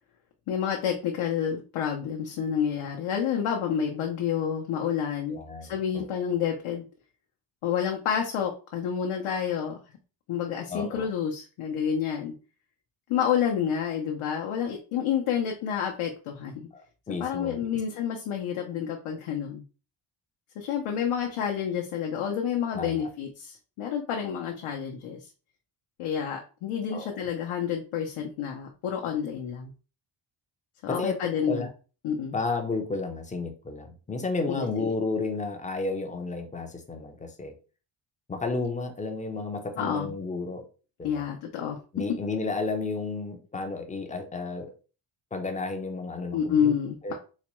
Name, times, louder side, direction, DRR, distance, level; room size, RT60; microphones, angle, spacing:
voice 1, 0.5-6.8 7.6-9.8 10.3-12.3 13.1-16.7 17.1-19.6 20.6-25.3 26.0-29.7 30.8-31.7 32.0-32.4 34.5-34.9 39.8-40.2 41.0-41.8 46.3-47.1, left 8 dB, 90° left, 1 dB, 0.7 m, -29 dB
voice 2, 5.3-6.1 10.7-11.1 16.7-16.8 17.1-17.7 22.7-23.1 26.9-27.2 30.9-31.2 31.5-31.7 32.3-37.5 38.3-40.6 41.0-41.3 41.9-44.7 45.3-46.7 47.0-47.1, left 3 dB, 20° left, 5 dB, 0.3 m, -32 dB
4.0 x 2.2 x 3.0 m, 0.35 s
wide cardioid pair, 170°, 49 cm